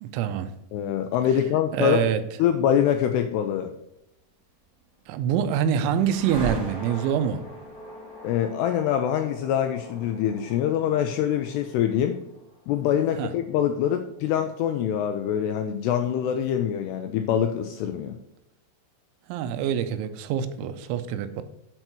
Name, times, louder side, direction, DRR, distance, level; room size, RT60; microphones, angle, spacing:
voice 1, 0.0-0.5 1.7-2.2 5.1-7.4 13.2-13.3 19.3-21.4, right 9 dB, 85° right, 10 dB, 3.0 m, -25 dB
voice 2, 0.7-2.1 2.4-3.7 8.2-12.2 12.7-18.2, left 9 dB, 85° left, 6 dB, 2.4 m, -24 dB
sound 1, 4.8-14.9, right 1 dB, 30° right, 2.4 m, -41 dB
8.0 x 4.5 x 5.8 m, 0.82 s
omnidirectional pair, 5.3 m